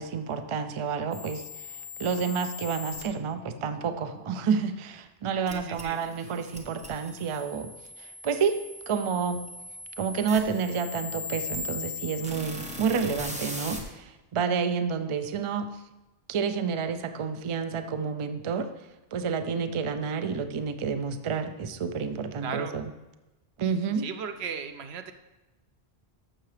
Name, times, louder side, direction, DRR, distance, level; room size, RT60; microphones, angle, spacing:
voice 1, 0.0-7.7 8.0-9.4 10.0-15.7 16.3-18.7 19.1-22.9 23.6-24.1, right 6 dB, 45° right, 8 dB, 0.4 m, -29 dB
sound 1, 1.1-3.0 5.5-13.8, left 3 dB, 5° right, 0.9 m, -39 dB
voice 2, 5.5-6.0 22.4-22.7 24.0-25.1, right 6 dB, 80° right, 8 dB, 0.9 m, -36 dB
13.5 x 5.7 x 3.3 m, 1.0 s
omnidirectional pair, 1.1 m